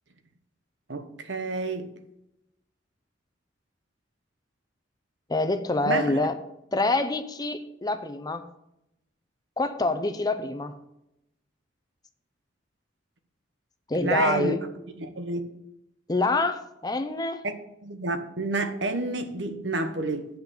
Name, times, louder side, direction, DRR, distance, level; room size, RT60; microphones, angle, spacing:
voice 1, 0.9-1.9 5.8-6.1 14.0-14.6 15.0-15.4 17.4-17.5 17.8-20.3, right 2 dB, 70° right, 8 dB, 1.1 m, -29 dB
voice 2, 5.3-6.3 6.7-8.4 9.6-10.7 13.9-14.6 16.1-17.4, left 2 dB, 20° left, 9 dB, 0.7 m, -26 dB
8.7 x 6.0 x 7.1 m, 0.84 s
head